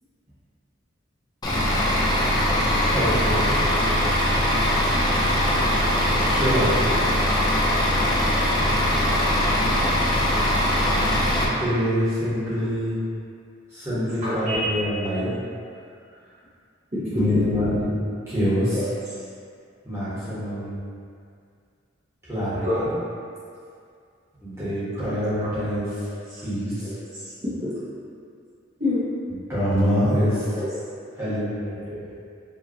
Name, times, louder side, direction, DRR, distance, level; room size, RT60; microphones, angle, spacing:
Bus / Idling, 1.4-11.4, left 1 dB, 20° left, 0.5 m, -21 dB
voice 1, 2.9-3.6 6.1-6.8 11.4-13.0 13.7-15.3 17.1-17.9 18.3-18.8 19.8-20.8 22.3-22.9 24.4-25.9 26.4-26.9 29.5-30.4 31.2-32.1, equal, 15° right, -13 dB, 1.4 m, -25 dB
voice 2, 14.2-14.6 16.9-17.6 18.7-19.1 22.6-22.9 25.4-25.5 26.0-26.4 26.8-27.7 28.8-29.1 30.1-30.2 30.5-30.7, left 1 dB, 35° right, -13 dB, 1.1 m, -28 dB
5.0 x 2.8 x 2.9 m, 2.3 s
head